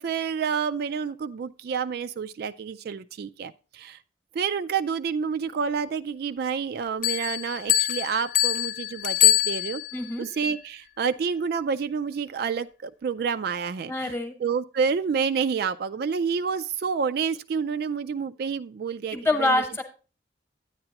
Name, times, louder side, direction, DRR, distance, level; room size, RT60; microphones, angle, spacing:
voice 1, 0.0-4.0 4.3-9.8 10.2-14.1 14.4-19.6, right 6 dB, 60° right, 0.3 m, -29 dB
sound 1, 7.0-10.1, left 13 dB, 45° left, 0.8 m, -24 dB
voice 2, 9.9-10.2 13.9-14.3 19.1-19.8, left 2 dB, 15° left, 1.0 m, -25 dB
9.5 x 8.9 x 2.9 m
head